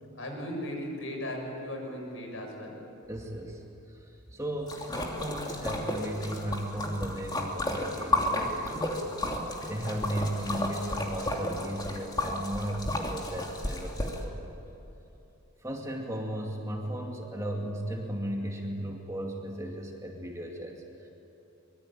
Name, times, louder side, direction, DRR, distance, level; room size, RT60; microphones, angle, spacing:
voice 1, 0.1-2.7, left 1 dB, 60° left, 1 dB, 7.0 m, -37 dB
voice 2, 3.1-3.6 4.1-9.0 9.7-14.4 15.6-21.1, right 1 dB, 15° right, 0 dB, 2.4 m, -36 dB
Splash splatter, 4.7-14.2, left 1 dB, 20° left, 2.9 m, -32 dB
25.0 x 23.5 x 8.9 m, 3.0 s
head